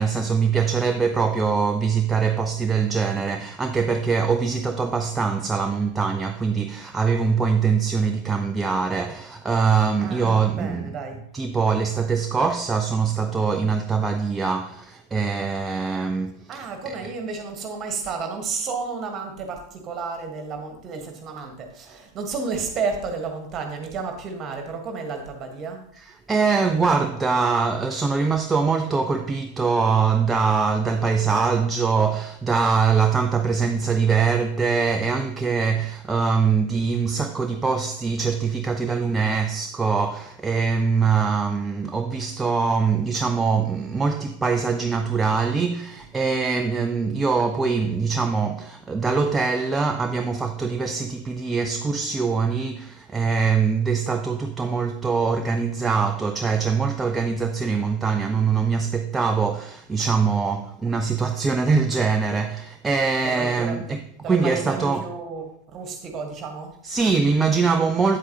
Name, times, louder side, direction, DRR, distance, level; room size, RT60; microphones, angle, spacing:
voice 1, 0.0-10.9 11.3-16.6 26.0-65.1 66.8-68.2, right 5 dB, 15° right, 0.4 m, -23 dB
voice 2, 10.0-11.2 16.5-25.8 63.2-63.8 64.2-66.7, right 4 dB, 30° right, 1.5 m, -32 dB
8.5 x 7.8 x 2.9 m
figure-of-eight pair, 90°, 0 cm